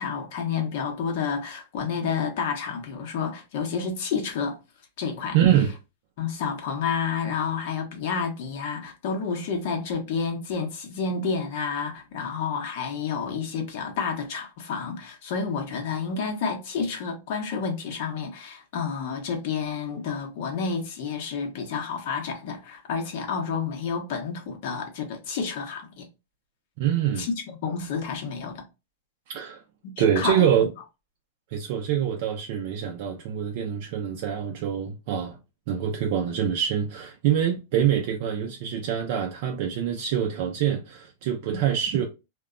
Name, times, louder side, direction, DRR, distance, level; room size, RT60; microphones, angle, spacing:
voice 1, 0.0-4.6 5.0-5.4 6.2-26.1 27.2-28.6 30.0-30.7, left 5 dB, 55° left, 0.8 m, -30 dB
voice 2, 5.3-5.7 26.8-27.3 29.3-29.6 30.0-30.7 31.5-35.4 35.7-42.1, right 9 dB, 50° right, 0.4 m, -25 dB
2.2 x 2.0 x 3.6 m
supercardioid pair, 155°, 0 cm